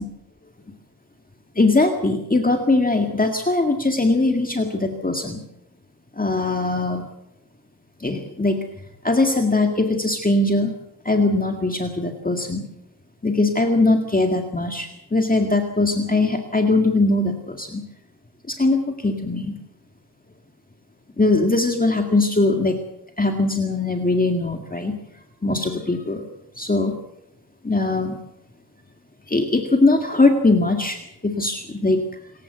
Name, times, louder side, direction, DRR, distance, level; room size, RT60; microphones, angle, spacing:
voice 1, 1.6-5.4 6.2-7.0 8.0-8.6 9.0-10.7 11.1-12.6 13.2-17.8 18.5-19.6 21.2-22.8 23.2-24.9 25.4-26.2 26.6-26.9 27.6-28.2 29.3-31.0 31.2-32.1, left 2 dB, 20° left, 4 dB, 2.0 m, -20 dB
27.0 x 15.5 x 8.0 m, 0.85 s
wide cardioid pair, 135°, 41 cm